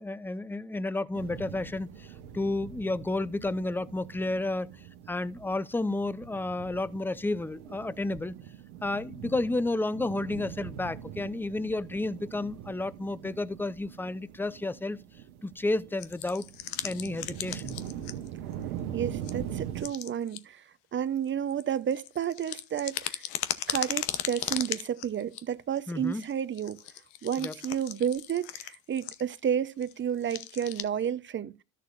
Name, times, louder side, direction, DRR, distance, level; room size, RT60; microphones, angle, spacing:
voice 1, 0.0-4.7 5.1-8.3 8.8-15.0 15.4-16.5 16.8-17.7 25.9-26.2 27.4-27.6, left 2 dB, 5° left, 0.6 m, -31 dB
sound 1, 1.1-19.8, right 10 dB, 85° right, 1.2 m, -42 dB
sound 2, 16.0-18.3 18.5-18.6 19.2-19.3 19.8-20.4 21.2-25.4 25.8-25.9 26.1-29.4 29.8-29.9 30.2-30.8, left 13 dB, 80° left, 1.0 m, -36 dB
voice 2, 18.9-20.6 20.9-23.2 23.7-26.8 27.2-31.5, right 9 dB, 35° right, 0.8 m, -31 dB
13.0 x 6.7 x 2.5 m
supercardioid pair, 75°, 34 cm